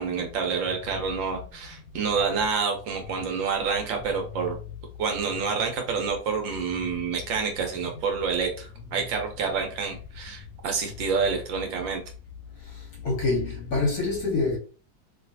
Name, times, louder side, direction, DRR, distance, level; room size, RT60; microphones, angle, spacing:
voice 1, 0.0-4.5 5.0-12.0, right 5 dB, 70° right, 1.4 m, -28 dB
voice 2, 13.0-14.6, left 3 dB, 55° left, 1.1 m, -25 dB
3.1 x 2.9 x 2.7 m
omnidirectional pair, 2.3 m